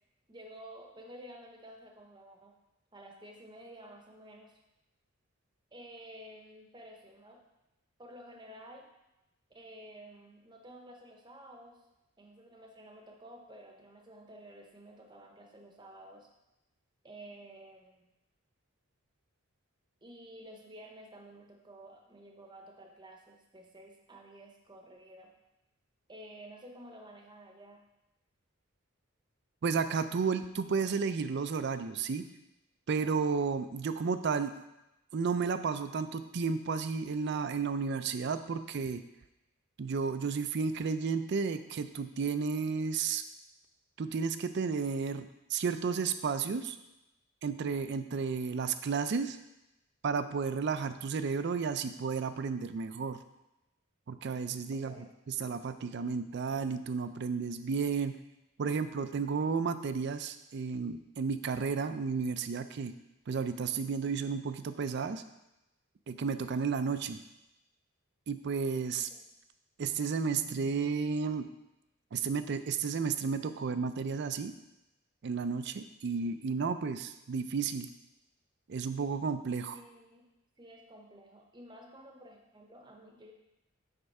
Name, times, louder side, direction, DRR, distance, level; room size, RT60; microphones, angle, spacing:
voice 1, 0.3-2.5 2.9-4.6 5.7-7.4 8.0-8.9 9.5-11.9 12.2-16.3 17.0-18.1 20.0-25.3 26.1-27.8 54.7-55.1 69.1-69.2 79.7-80.3 80.6-83.3, right 1 dB, 20° right, 2 dB, 0.8 m, -52 dB
voice 2, 29.6-32.2 32.9-34.5 35.1-39.0 39.8-43.2 44.0-46.8 47.4-49.4 50.0-53.2 54.1-54.9 55.3-58.2 58.6-62.9 63.3-65.2 66.1-67.2 68.3-69.1 69.8-71.5 72.1-74.5 75.2-77.9 78.7-79.8, right 5 dB, 50° right, 11 dB, 0.4 m, -32 dB
7.9 x 3.4 x 5.4 m, 0.93 s
head